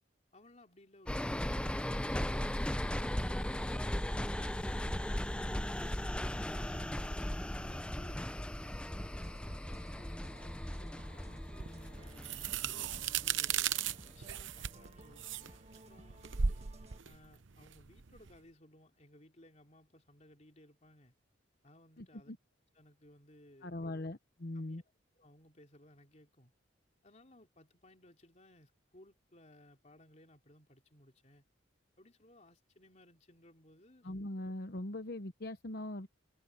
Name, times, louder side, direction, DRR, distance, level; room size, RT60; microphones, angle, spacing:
voice 1, 0.3-4.9 5.3-8.3 8.6-9.1 9.7-13.7 14.1-16.5 17.0-21.1 21.6-22.3 22.7-24.0 24.5-24.8 25.1-26.5 27.0-31.4 32.0-34.1, left 1 dB, 35° left, 3.4 m, -61 dB
sound 1, 1.1-13.6 14.0-14.1, left 1 dB, 5° left, 0.5 m, -37 dB
sound 2, 9.0-17.0, right 1 dB, 35° right, 1.6 m, -57 dB
sound 3, 11.6-18.4, right 7 dB, 75° right, 0.8 m, -36 dB
voice 2, 22.0-22.4 23.6-24.8 34.0-36.1, left 1 dB, 55° left, 1.0 m, -41 dB
head